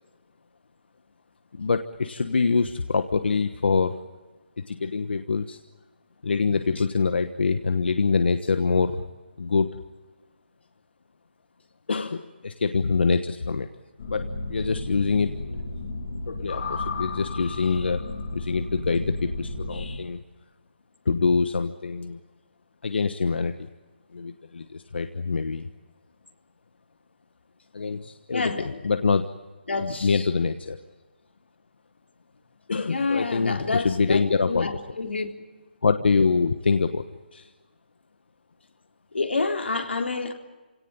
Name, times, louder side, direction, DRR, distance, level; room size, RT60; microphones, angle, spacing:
voice 1, 1.5-4.0 4.7-5.6 6.2-9.0 9.4-9.7 11.9-13.7 14.0-15.4 16.3-18.0 18.3-20.2 21.0-22.2 22.8-23.7 24.1-25.7 27.7-29.3 29.8-30.8 32.7-34.7 35.8-37.0 37.3-37.5, left 4 dB, 65° left, 1.2 m, -25 dB
sound 1, 14.0-20.0, left 2 dB, 40° left, 3.1 m, -33 dB
voice 2, 28.3-28.7 29.7-30.3 32.9-35.3 39.1-40.3, left 3 dB, 90° left, 3.7 m, -28 dB
28.5 x 18.0 x 8.9 m
hypercardioid pair, 175°, 6 cm